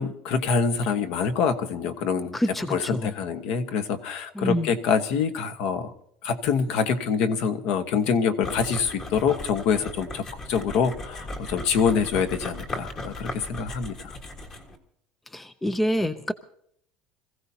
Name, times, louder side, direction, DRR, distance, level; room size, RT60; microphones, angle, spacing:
voice 1, 0.0-2.4 2.7-5.9 6.2-14.2, left 6 dB, 55° left, 10 dB, 1.3 m, -25 dB
voice 2, 2.3-3.1 4.3-4.7 15.3-16.3, equal, 5° left, 12 dB, 0.5 m, -27 dB
sound 1, 8.4-14.8, left 1 dB, 25° left, 1.6 m, -37 dB
26.0 x 15.5 x 2.8 m, 0.69 s
cardioid pair, 175°, 2 cm